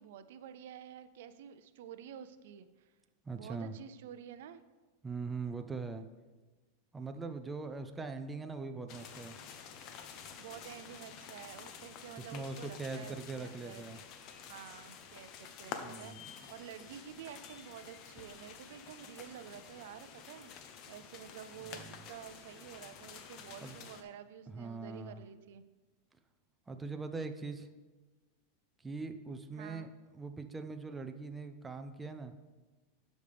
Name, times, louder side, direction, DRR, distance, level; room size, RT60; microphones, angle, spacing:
voice 1, 0.0-2.9 3.3-4.6 10.4-13.9 14.5-20.5 20.9-25.6 29.6-29.9, right 9 dB, 70° right, 12 dB, 0.4 m, -50 dB
voice 2, 3.2-3.7 5.0-6.1 6.9-9.4 12.2-14.0 15.8-16.3 21.7-22.1 23.6-23.8 24.5-25.2 26.7-27.7 28.8-32.3, right 4 dB, 10° right, 6 dB, 0.4 m, -41 dB
sound 1, 8.9-24.0, left 7 dB, 40° left, 0.7 m, -50 dB
11.5 x 5.2 x 3.4 m, 1.2 s
supercardioid pair, 150°, 0 cm